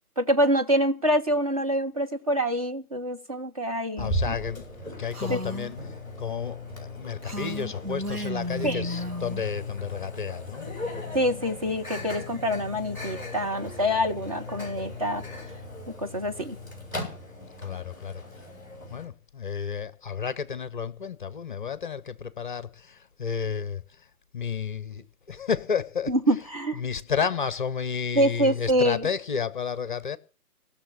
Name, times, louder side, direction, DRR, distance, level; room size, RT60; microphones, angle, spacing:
voice 1, 0.2-4.3 5.3-5.4 8.6-8.8 11.1-15.2 16.0-16.6 26.1-26.8 28.2-29.1, equal, 25° right, 0.7 m, -25 dB
voice 2, 4.0-10.7 17.6-18.2 18.9-24.1 24.3-26.1 26.7-30.2, left 6 dB, 35° left, 0.7 m, -32 dB
Microwave oven, 4.0-19.1, left 1 dB, 10° right, 6.3 m, -37 dB
Female speech woman speaking, 5.1-5.7 7.2-9.5, left 1 dB, 80° right, 4.3 m, -33 dB
17.5 x 6.7 x 8.7 m
figure-of-eight pair, 145°, 45 cm